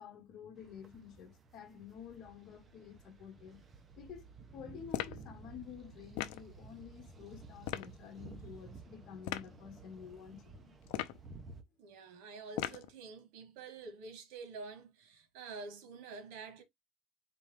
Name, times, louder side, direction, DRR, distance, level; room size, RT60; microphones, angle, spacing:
voice 1, 0.0-3.6 4.0-4.3 4.5-10.8, left 8 dB, 50° left, 1.3 m, -50 dB
sound 1, 0.6-11.6, right 4 dB, 25° right, 0.8 m, -54 dB
sound 2, 4.9-5.2 6.2-6.4 7.6-7.9 9.2-9.5 10.9-11.3 12.6-12.9, left 14 dB, 90° left, 0.5 m, -38 dB
voice 2, 11.8-16.6, right 4 dB, 90° right, 1.4 m, -48 dB
4.2 x 3.3 x 3.3 m
cardioid pair, 145°, 0 cm